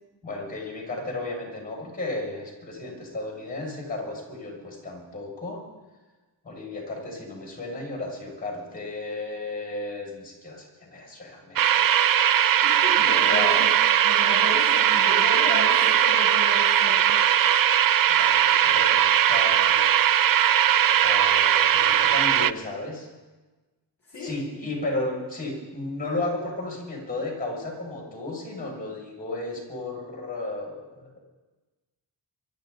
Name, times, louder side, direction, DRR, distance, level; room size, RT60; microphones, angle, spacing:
voice 1, 0.2-5.6 6.4-11.9 13.0-13.6 18.1-19.9 21.0-23.1 24.2-31.2, left 2 dB, 20° left, -1 dB, 6.7 m, -34 dB
sound 1, 11.6-22.5, right 10 dB, 50° right, 0.4 m, -20 dB
voice 2, 12.6-13.7 14.0-17.2 24.0-24.3, left 2 dB, 40° left, -6 dB, 6.9 m, -34 dB
sound 2, 16.0-18.1, left 4 dB, 85° right, 6.1 m, -43 dB
24.0 x 13.5 x 4.1 m, 1.2 s
wide cardioid pair, 90°, 44 cm